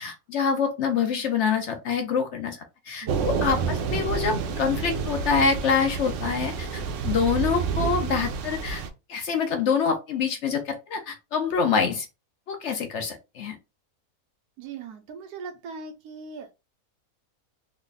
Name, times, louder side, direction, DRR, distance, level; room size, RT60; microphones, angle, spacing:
voice 1, 0.0-2.6 2.9-8.8 9.1-12.1 12.5-13.6, left 6 dB, 65° left, 0.8 m, -26 dB
Thunder / Rain, 3.1-8.9, right 5 dB, 65° right, 0.8 m, -29 dB
voice 2, 14.6-16.5, right 5 dB, 90° right, 1.2 m, -40 dB
3.3 x 2.1 x 3.7 m
omnidirectional pair, 1.6 m